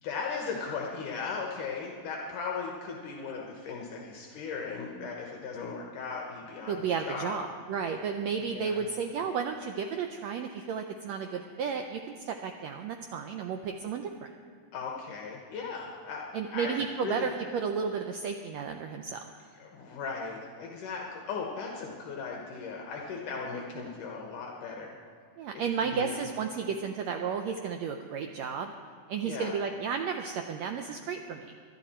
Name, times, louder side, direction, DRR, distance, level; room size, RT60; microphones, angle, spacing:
voice 1, 0.0-7.4 8.4-8.8 14.7-16.8 17.0-17.3 19.6-25.0 25.5-26.2 29.2-29.6, left 5 dB, 75° left, 0 dB, 2.7 m, -37 dB
voice 2, 6.7-14.3 16.3-19.2 25.4-28.7 29.1-31.5, right 6 dB, 85° right, 5 dB, 1.5 m, -33 dB
22.0 x 12.0 x 4.4 m, 2.1 s
omnidirectional pair, 3.9 m